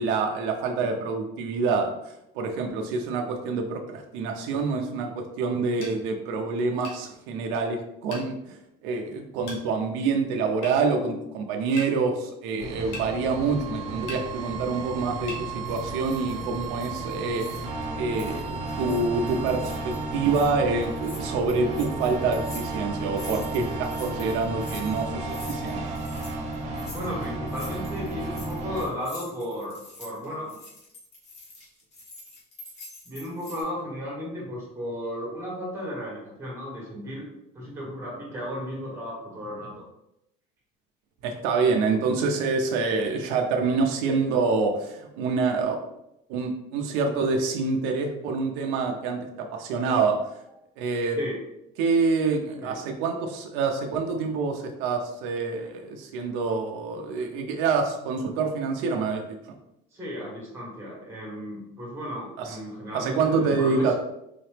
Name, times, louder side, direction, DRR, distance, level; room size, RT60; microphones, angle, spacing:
voice 1, 0.0-8.6 8.8-17.7 17.9-25.8 41.2-45.8 46.3-50.4 50.8-51.2 51.8-59.4 62.9-63.9, right 4 dB, 90° right, 3 dB, 0.6 m, -26 dB
sound 1, 5.8-6.0 6.8-7.0 8.1-8.3 9.5-9.6 10.6-10.8 11.8-11.9 12.9-13.1 14.1-14.2 15.3-15.4, left 2 dB, 85° left, 1.2 m, -38 dB
sound 2, 12.6-28.9, right 3 dB, 35° right, 0.6 m, -33 dB
sound 3, 15.7-17.8 18.1-20.5 20.8-33.6, left 2 dB, 35° left, 1.5 m, -46 dB
voice 2, 26.9-30.6 33.0-37.3 37.5-39.8 51.1-51.4 52.6-52.7 59.9-63.9, equal, 15° right, -4 dB, 1.5 m, -34 dB
3.9 x 2.9 x 3.2 m, 0.84 s
cardioid pair, 170°, 19 cm